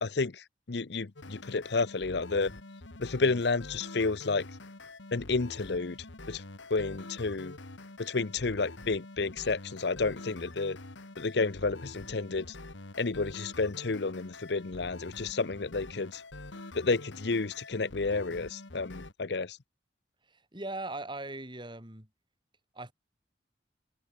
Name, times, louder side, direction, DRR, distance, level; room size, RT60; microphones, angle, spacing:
voice 1, 0.0-2.5 3.0-4.5 5.1-6.0 6.3-6.4 6.7-7.5 8.0-10.8 11.2-12.5 13.0-16.2 16.7-19.6, left 3 dB, 60° left, 0.8 m, -31 dB
sound 1, 1.2-19.1, left 2 dB, 80° left, 2.1 m, -46 dB
voice 2, 20.3-22.1 22.7-22.9, right 2 dB, 25° right, 4.8 m, -39 dB
head